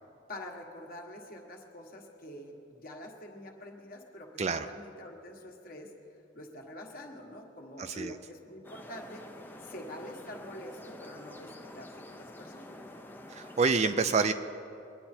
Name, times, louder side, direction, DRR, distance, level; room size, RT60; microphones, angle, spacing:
voice 1, 0.0-5.9 6.3-9.2 9.6-12.8, left 1 dB, 45° left, 1 dB, 1.6 m, -46 dB
voice 2, 7.8-8.2 13.3-14.3, right 4 dB, 35° right, 9 dB, 0.4 m, -27 dB
sound 1, 8.6-13.7, left 1 dB, 10° left, 0.6 m, -48 dB
23.0 x 10.0 x 4.4 m, 2.7 s
head